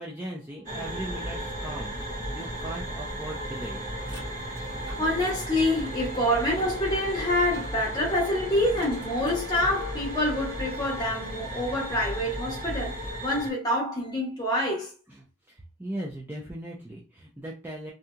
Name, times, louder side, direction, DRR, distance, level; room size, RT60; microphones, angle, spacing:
voice 1, 0.0-3.9 15.1-17.9, right 1 dB, 10° right, 0.4 m, -38 dB
sound 1, 0.6-13.5, right 1 dB, 40° right, 1.4 m, -36 dB
sound 2, 0.8-13.2, equal, 25° right, 1.2 m, -40 dB
voice 2, 5.0-13.0 13.2-14.9, left 1 dB, 20° left, 1.0 m, -26 dB
2.7 x 2.6 x 2.3 m
head